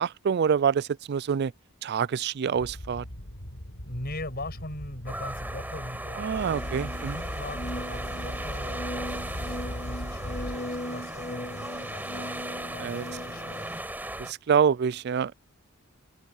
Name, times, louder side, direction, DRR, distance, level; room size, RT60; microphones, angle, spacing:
voice 1, 0.0-1.5 1.8-3.0 6.2-7.2 12.8-13.0 14.3-15.3, right 7 dB, 50° right, 0.3 m, -26 dB
sound 1, 2.6-10.6, equal, 75° left, 4.4 m, -39 dB
voice 2, 3.8-9.1 9.3-12.4 12.7-13.7, left 1 dB, 45° left, 7.6 m, -41 dB
sound 2, 5.1-14.3, right 1 dB, 10° right, 6.7 m, -37 dB
sound 3, 6.4-13.8, left 1 dB, 30° left, 2.0 m, -39 dB
head